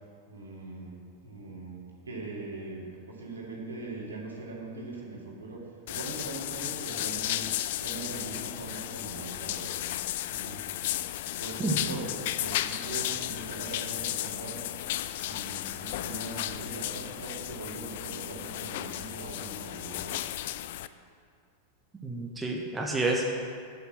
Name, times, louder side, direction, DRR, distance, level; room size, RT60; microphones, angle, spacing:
voice 1, 0.3-7.5 7.8-9.7 10.3-10.6 11.4-12.1 12.4-14.6 15.2-20.2, right 3 dB, 75° right, -3 dB, 2.6 m, -41 dB
sound 1, 5.9-20.9, left 13 dB, 55° left, 0.4 m, -34 dB
voice 2, 22.0-23.2, right 2 dB, 15° right, 0 dB, 1.3 m, -29 dB
8.5 x 8.1 x 7.6 m, 2.2 s
figure-of-eight pair, 90°, 0 cm